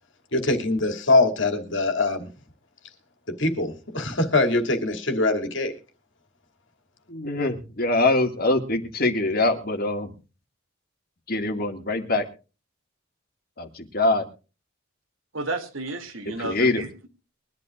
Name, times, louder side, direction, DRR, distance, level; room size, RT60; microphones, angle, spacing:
voice 1, 0.3-2.3 3.4-5.7, left 2 dB, 65° left, 2.7 m, -23 dB
voice 2, 7.1-10.1 11.3-12.3 13.6-14.3 16.4-16.9, left 2 dB, 45° left, 2.1 m, -24 dB
voice 3, 15.3-17.1, right 2 dB, 80° right, 2.7 m, -32 dB
23.0 x 12.0 x 2.5 m
head